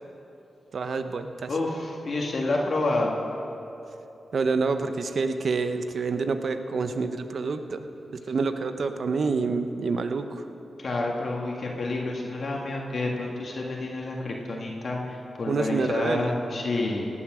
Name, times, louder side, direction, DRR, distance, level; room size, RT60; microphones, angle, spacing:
voice 1, 0.7-1.5 4.3-7.9 8.3-10.4 15.5-16.3, right 4 dB, 65° right, 8 dB, 0.8 m, -27 dB
voice 2, 1.5-3.2 10.8-17.1, left 2 dB, 60° left, -1 dB, 1.8 m, -29 dB
17.5 x 8.5 x 6.2 m, 3.0 s
cardioid pair, 60°, 0 cm